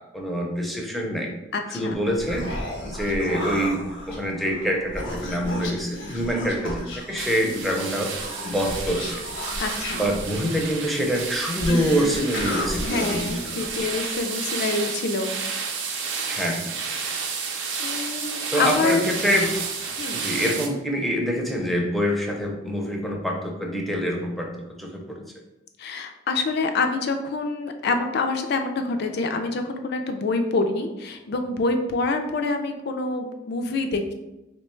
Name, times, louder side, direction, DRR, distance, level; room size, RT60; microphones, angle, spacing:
voice 1, 0.0-1.3 1.7-2.5 2.8-8.1 8.4-9.2 9.9-13.4 16.3-16.6 18.5-19.5 20.1-24.5 24.8-25.2, equal, ahead, 0 dB, 0.5 m, -25 dB
voice 2, 1.5-2.0 5.5-5.8 7.4-7.5 9.6-10.0 11.7-11.8 12.8-15.8 17.8-19.0 20.0-20.2 25.8-34.1, left 3 dB, 60° left, 6 dB, 0.4 m, -26 dB
Human voice, 1.9-14.2, left 1 dB, 75° left, 0.8 m, -34 dB
sound 1, 7.2-20.7, right 5 dB, 75° right, 0.6 m, -31 dB
3.1 x 2.2 x 4.3 m, 0.98 s
head